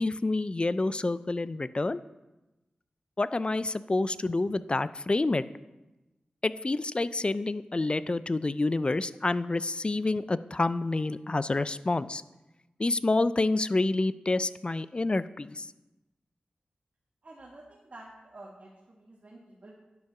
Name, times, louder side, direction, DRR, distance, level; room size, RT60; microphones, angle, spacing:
voice 1, 0.0-2.0 3.2-5.4 6.4-12.2 12.8-15.7, left 2 dB, 35° left, 15 dB, 0.4 m, -28 dB
voice 2, 17.2-19.7, right 2 dB, 55° right, -3 dB, 1.6 m, -49 dB
10.5 x 5.4 x 5.9 m, 1.0 s
cardioid pair, 55°, 3 cm